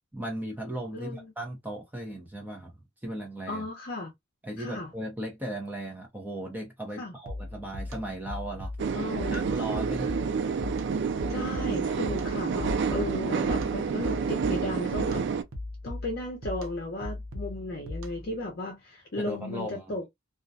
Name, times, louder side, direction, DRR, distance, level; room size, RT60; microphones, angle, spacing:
voice 1, 0.1-2.7 3.0-3.7 4.4-9.0 9.3-10.1 19.2-20.0, right 1 dB, 10° right, 0.6 m, -37 dB
voice 2, 0.9-1.3 3.5-4.1 4.6-4.9 7.0-7.1 8.9-9.5 11.3-15.2 15.8-20.0, left 1 dB, 50° left, 0.7 m, -35 dB
sound 1, 7.3-18.4, left 2 dB, 90° right, 0.7 m, -39 dB
sound 2, 8.8-15.4, right 5 dB, 55° right, 0.3 m, -29 dB
2.4 x 2.1 x 2.5 m
head